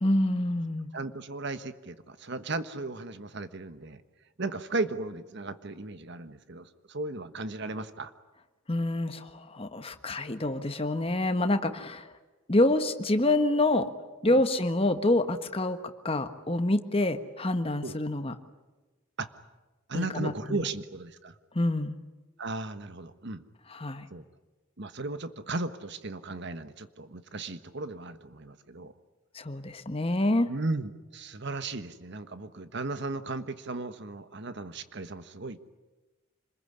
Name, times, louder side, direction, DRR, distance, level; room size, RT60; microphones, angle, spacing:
voice 1, 0.0-0.9 8.7-12.1 12.5-13.9 14.2-15.8 16.0-18.3 19.9-20.6 21.5-22.0 23.7-24.1 29.3-30.5, left 1 dB, 25° left, 8 dB, 1.4 m, -27 dB
voice 2, 0.9-4.0 4.4-8.1 14.2-14.4 17.8-18.0 19.2-19.3 19.9-21.4 22.4-23.4 24.1-24.2 24.8-28.9 30.5-35.6, right 3 dB, 55° right, 11 dB, 1.3 m, -36 dB
27.0 x 21.5 x 9.9 m, 1.2 s
head